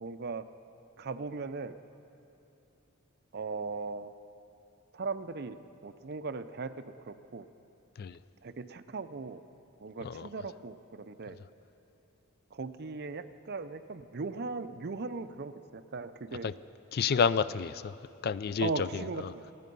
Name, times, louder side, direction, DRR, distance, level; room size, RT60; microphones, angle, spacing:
voice 1, 0.0-0.4 1.0-1.8 3.3-4.1 4.9-5.6 5.8-7.5 8.4-9.4 9.8-11.4 12.5-16.5 18.6-19.4, right 4 dB, 50° right, 0.5 m, -38 dB
voice 2, 16.9-18.0 18.2-19.3, left 6 dB, 50° left, 0.3 m, -30 dB
28.0 x 9.4 x 5.4 m
head